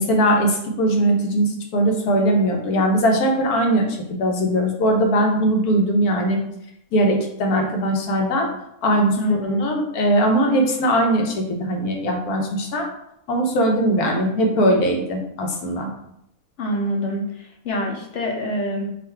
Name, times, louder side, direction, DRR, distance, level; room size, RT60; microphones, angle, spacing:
voice 1, 0.0-6.4 6.9-8.5 8.8-12.8 13.3-15.9, right 1 dB, 85° left, 2 dB, 1.3 m, -20 dB
voice 2, 9.2-9.7 16.6-19.0, equal, 60° left, 1 dB, 0.9 m, -26 dB
3.8 x 2.5 x 4.4 m, 0.77 s
omnidirectional pair, 1.6 m